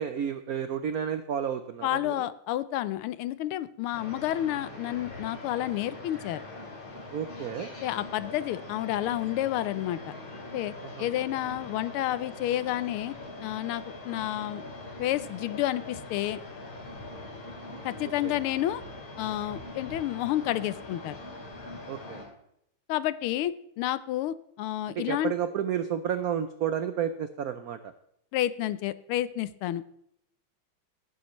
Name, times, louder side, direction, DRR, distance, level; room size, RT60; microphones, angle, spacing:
voice 1, 0.0-2.3 7.1-7.7 10.8-11.1 18.0-18.3 21.9-22.2 25.0-27.9, right 8 dB, 85° right, 10 dB, 0.8 m, -31 dB
voice 2, 1.8-6.4 7.8-10.1 10.5-14.6 15.0-16.4 17.8-18.8 19.2-21.2 22.9-25.3 28.3-29.8, left 13 dB, 90° left, 16 dB, 1.5 m, -30 dB
sound 1, 3.9-22.2, left 2 dB, 70° left, 3.6 m, -42 dB
18.5 x 9.7 x 3.1 m, 0.76 s
omnidirectional pair, 2.3 m